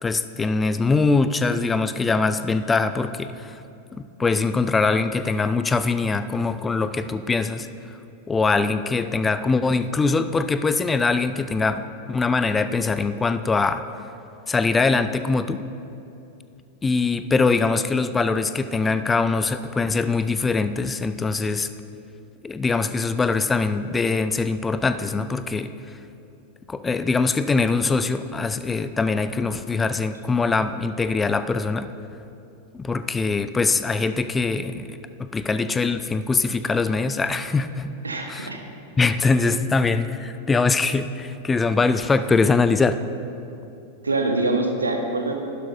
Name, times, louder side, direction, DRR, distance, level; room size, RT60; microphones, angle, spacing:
voice 1, 0.0-3.6 4.2-7.7 8.3-13.8 14.5-15.6 16.8-21.7 22.4-25.7 26.7-31.9 32.7-37.9 38.3-38.5 39.0-43.0, left 4 dB, 15° left, 11 dB, 0.3 m, -22 dB
voice 2, 38.0-38.6 44.0-45.3, right 2 dB, 75° right, 4 dB, 1.0 m, -24 dB
11.5 x 11.0 x 2.6 m, 2.8 s
figure-of-eight pair, 90°, 0 cm